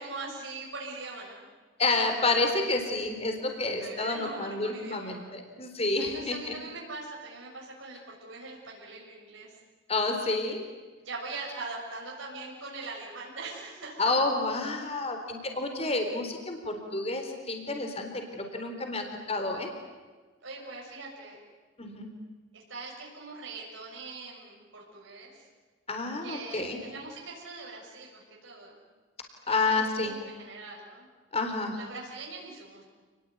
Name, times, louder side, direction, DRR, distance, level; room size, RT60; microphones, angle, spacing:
voice 1, 0.0-1.4 3.8-5.2 6.0-9.6 11.0-14.0 20.4-21.4 22.5-25.5 26.2-28.8 29.4-31.1 31.8-32.8, right 3 dB, 85° right, -3 dB, 6.6 m, -42 dB
voice 2, 1.8-6.6 9.9-10.6 14.0-19.7 21.8-22.1 25.9-26.8 29.5-30.1 31.3-31.8, left 3 dB, 30° left, 5 dB, 3.9 m, -29 dB
29.5 x 21.0 x 9.6 m, 1.4 s
head